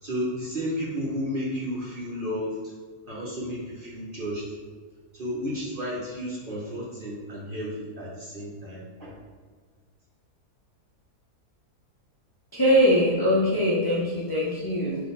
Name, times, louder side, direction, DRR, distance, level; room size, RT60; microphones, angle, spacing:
voice 1, 0.0-2.7 3.1-4.4 5.1-9.1, equal, 45° right, -6 dB, 0.8 m, -32 dB
voice 2, 12.5-15.1, equal, 30° left, -7 dB, 0.4 m, -22 dB
4.1 x 2.7 x 3.8 m, 1.5 s
omnidirectional pair, 1.7 m